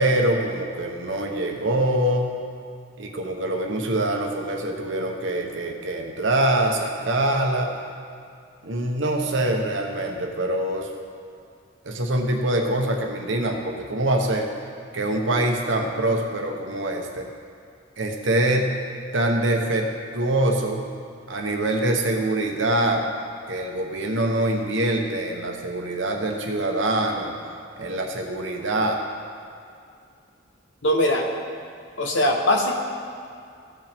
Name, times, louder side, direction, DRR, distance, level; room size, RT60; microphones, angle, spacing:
voice 1, 0.0-2.3 3.0-7.7 8.6-10.9 11.8-14.5 14.9-17.3 18.0-18.8 19.1-20.9 21.3-23.0 23.5-27.3 27.8-29.0, right 1 dB, 70° right, 2 dB, 1.0 m, -24 dB
voice 2, 30.8-31.3 32.0-32.7, left 1 dB, 70° left, 1 dB, 1.1 m, -20 dB
14.5 x 5.3 x 3.5 m, 2.3 s
head